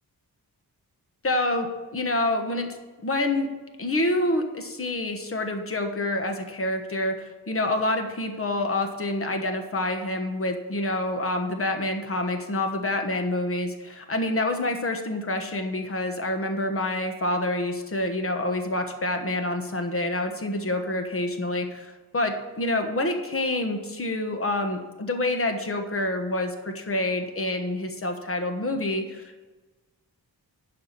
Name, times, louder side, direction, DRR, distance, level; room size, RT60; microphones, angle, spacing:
voice 1, 1.2-3.5 3.8-29.4, left 1 dB, 35° left, 5 dB, 1.3 m, -27 dB
11.5 x 5.0 x 7.3 m, 1.2 s
wide cardioid pair, 140°, 38 cm